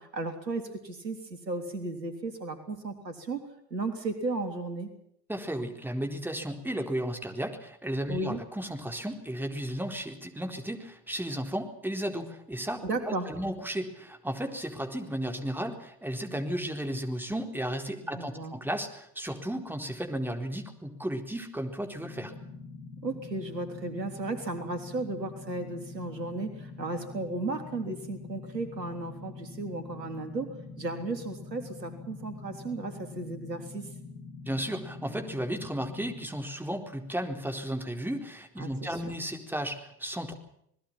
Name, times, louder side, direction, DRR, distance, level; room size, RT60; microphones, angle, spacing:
voice 1, 0.0-4.9 8.1-8.4 12.8-13.3 18.1-18.5 23.0-33.9 38.6-39.1, right 2 dB, 85° right, 8 dB, 3.5 m, -35 dB
voice 2, 5.3-22.3 34.5-40.3, right 1 dB, 5° right, 4 dB, 4.2 m, -34 dB
sound 1, 22.0-36.3, left 4 dB, 60° left, 6.4 m, -45 dB
27.5 x 20.5 x 5.9 m, 0.72 s
figure-of-eight pair, 75°, 48 cm